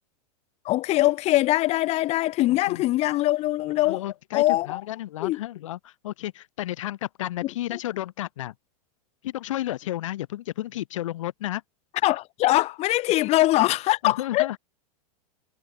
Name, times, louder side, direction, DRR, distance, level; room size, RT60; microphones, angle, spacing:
voice 1, 0.7-4.0 4.3-4.8 5.2-5.4 7.4-7.5 12.0-14.6, left 17 dB, 35° left, 3.3 m, -22 dB
voice 2, 2.5-2.8 3.8-8.5 9.2-11.6 13.2-13.4 14.0-14.6, left 14 dB, 55° left, 3.1 m, -32 dB
figure-of-eight pair, 95°, 20 cm